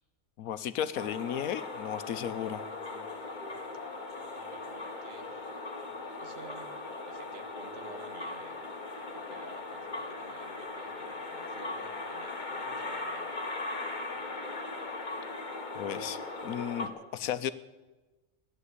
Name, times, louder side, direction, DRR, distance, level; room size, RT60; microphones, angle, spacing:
voice 1, 0.4-2.7 15.7-17.5, left 10 dB, 85° left, 13 dB, 1.2 m, -34 dB
sound 1, 0.9-16.9, left 3 dB, 35° left, 1.5 m, -39 dB
voice 2, 4.5-5.5 6.1-8.6 9.1-13.4, right 4 dB, 60° right, 8 dB, 1.5 m, -52 dB
15.5 x 11.0 x 8.3 m, 1.2 s
omnidirectional pair, 1.4 m